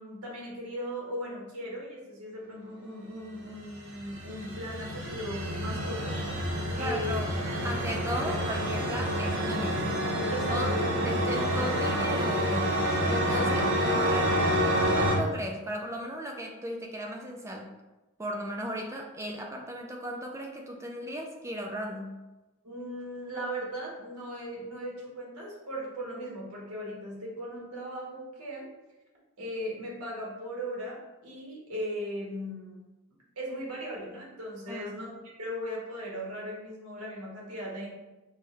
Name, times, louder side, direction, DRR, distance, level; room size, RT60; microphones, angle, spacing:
voice 1, 0.0-6.2 6.8-7.2 10.3-10.9 11.1-11.4 22.6-28.7 29.4-32.8 33.4-35.1 35.4-37.9, equal, 80° right, -3 dB, 1.2 m, -38 dB
sound 1, 3.6-15.2, equal, 55° right, 0.8 m, -28 dB
voice 2, 6.8-7.3 7.6-9.9 10.5-10.7 11.0-12.8 13.1-14.5 14.9-17.7 18.2-22.2 34.7-34.9, equal, 15° right, 2 dB, 0.3 m, -36 dB
5.2 x 2.2 x 3.3 m, 1.1 s
head